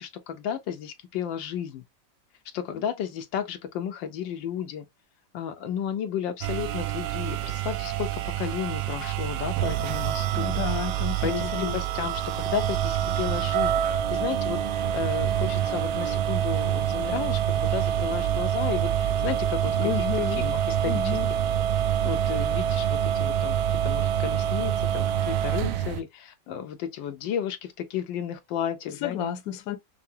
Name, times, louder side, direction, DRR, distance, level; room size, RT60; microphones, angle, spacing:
voice 1, 0.0-1.8 2.5-4.8 5.3-10.8 11.2-19.9 20.3-21.0 22.0-29.2, left 9 dB, 80° left, 1.4 m, -33 dB
sound 1, 6.4-26.0, right 10 dB, 75° right, 1.2 m, -26 dB
voice 2, 10.3-11.8 19.8-20.4 20.8-21.3 29.0-29.8, left 10 dB, 60° left, 1.1 m, -31 dB
5.8 x 2.1 x 2.6 m
omnidirectional pair, 2.0 m